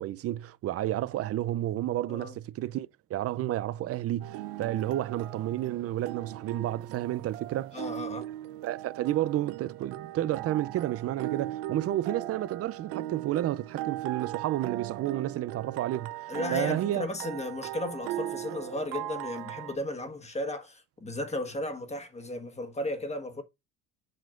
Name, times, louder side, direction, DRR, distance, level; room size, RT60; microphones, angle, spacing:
voice 1, 0.0-7.8 8.6-17.1, right 13 dB, 40° right, 0.5 m, -31 dB
sound 1, 4.2-19.8, right 14 dB, 85° right, 0.6 m, -38 dB
voice 2, 7.7-8.3 16.3-23.4, left 1 dB, 20° left, 1.5 m, -35 dB
7.7 x 5.6 x 2.5 m
supercardioid pair, 105°, 36 cm